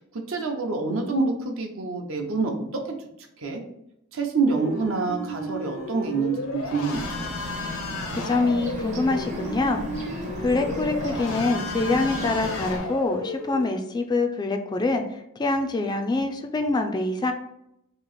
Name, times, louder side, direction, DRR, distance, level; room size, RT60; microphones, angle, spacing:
voice 1, 0.3-2.6 3.4-3.6 4.1-7.1, right 4 dB, 70° right, 2 dB, 0.7 m, -26 dB
sound 1, 4.5-13.6, left 2 dB, 75° left, 0.6 m, -34 dB
Bird, 6.9-12.8, equal, 35° right, 0.7 m, -34 dB
voice 2, 8.1-9.8 10.4-17.3, left 3 dB, 20° left, 5 dB, 0.3 m, -25 dB
3.0 x 2.8 x 4.0 m, 0.80 s
head